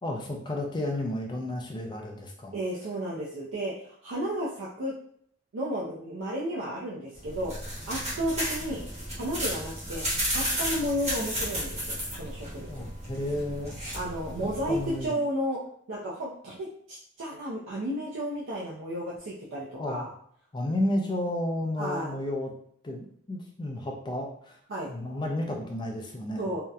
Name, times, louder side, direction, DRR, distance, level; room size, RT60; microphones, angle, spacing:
voice 1, 0.0-2.5 12.7-13.8 14.7-15.2 19.7-20.1 20.5-22.5 22.8-24.6 24.9-26.5, left 1 dB, 20° left, 1 dB, 0.4 m, -32 dB
voice 2, 2.5-4.9 5.5-7.5 7.9-8.8 9.1-12.7 13.9-15.6 15.9-20.1 21.8-22.1 24.7-24.9 26.4-26.6, equal, 65° right, -5 dB, 0.4 m, -33 dB
sound 1, 7.1-15.0, equal, 30° right, 0.8 m, -33 dB
2.7 x 2.0 x 2.3 m, 0.65 s
head